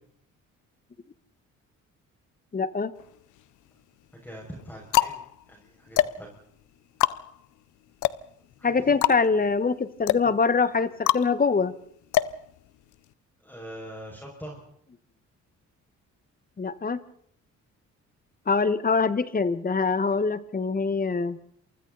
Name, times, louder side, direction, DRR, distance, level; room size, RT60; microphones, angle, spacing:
voice 1, 2.5-2.9 8.6-11.7 16.6-17.0 18.5-21.4, left 4 dB, 30° left, 14 dB, 1.4 m, -24 dB
sound 1, 3.0-3.7 4.4-13.1, left 14 dB, 85° left, 0.8 m, -28 dB
voice 2, 4.2-5.2 5.5-6.3 8.6-8.7 13.4-14.6, equal, 5° left, -1 dB, 6.2 m, -42 dB
28.0 x 24.5 x 4.1 m, 0.66 s
cardioid pair, 90°, 30 cm